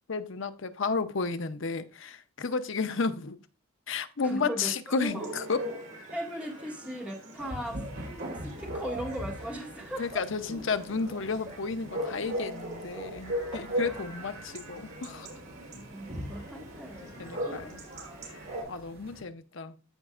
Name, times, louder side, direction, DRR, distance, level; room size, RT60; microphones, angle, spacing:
voice 1, 0.1-3.4 3.9-5.6 10.0-15.3 17.2-17.8 18.2-18.4 18.7-19.8, left 4 dB, 60° left, 0.7 m, -32 dB
voice 2, 4.2-5.3 6.1-7.8 8.3-10.0 13.9-14.1 15.1-17.7, equal, 5° right, 1.8 m, -38 dB
Chatter / Bark / Livestock farm animals working animals, 5.0-18.6, right 1 dB, 70° right, 4.0 m, -39 dB
sound 1, 7.4-19.2, equal, 50° right, 1.5 m, -44 dB
Packing tape duct tape, 9.2-9.5 10.5-11.0 12.0-12.3 13.9-14.1 14.4-14.6 14.8-15.3, equal, 30° right, 2.3 m, -54 dB
14.5 x 5.1 x 2.4 m
head